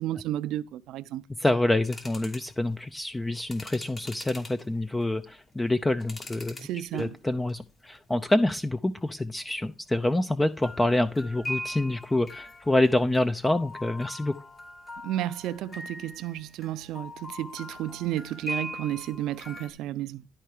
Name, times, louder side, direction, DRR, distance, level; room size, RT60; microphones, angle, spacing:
voice 1, 0.0-1.2 6.6-7.2 15.0-20.3, right 13 dB, 90° right, 0.5 m, -32 dB
voice 2, 1.4-6.7 6.9-14.3, left 1 dB, 15° left, 0.6 m, -26 dB
sound 1, 1.8-2.5 3.3-4.7 5.3-6.7 7.0-7.5 8.0-8.1 10.6-19.7, left 1 dB, 35° left, 2.7 m, -41 dB
12.0 x 4.6 x 4.9 m
cardioid pair, 90°, 0 cm